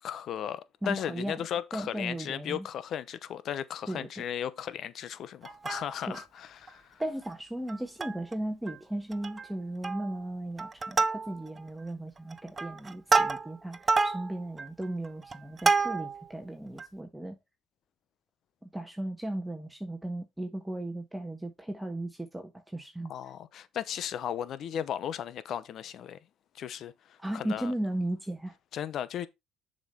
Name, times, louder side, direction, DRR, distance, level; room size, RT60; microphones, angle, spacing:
voice 1, 0.0-7.0 23.1-26.2 26.5-27.7 28.7-29.3, left 9 dB, 60° left, 0.8 m, -36 dB
voice 2, 0.8-1.4 1.7-2.6 3.9-4.2 6.1-6.2 7.0-17.4 18.6-23.1 27.2-28.5, right 1 dB, 5° right, 1.4 m, -36 dB
Plucked string instrument, 5.4-6.2 6.7-6.8 7.0-7.2 7.7-8.3 8.7-8.8 9.1-9.5 9.8-10.2 10.6-11.6 12.2-16.3 16.8-16.9, right 4 dB, 30° right, 0.7 m, -29 dB
7.0 x 5.4 x 4.2 m
supercardioid pair, 80°, 0 cm